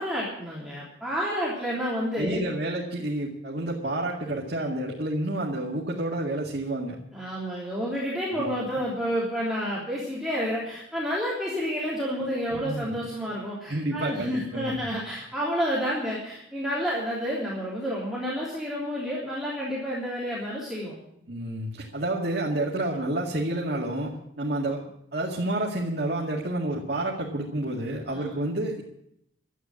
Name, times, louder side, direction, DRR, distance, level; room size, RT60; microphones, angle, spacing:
voice 1, 0.0-2.4 7.1-20.9 28.1-28.2, equal, ahead, -7 dB, 3.3 m, -30 dB
voice 2, 2.2-7.0 8.3-8.7 12.5-12.9 13.7-14.8 21.3-24.1 24.4-24.8 25.1-28.8, right 1 dB, 65° right, -3 dB, 2.2 m, -29 dB
12.5 x 9.3 x 8.7 m, 0.75 s
head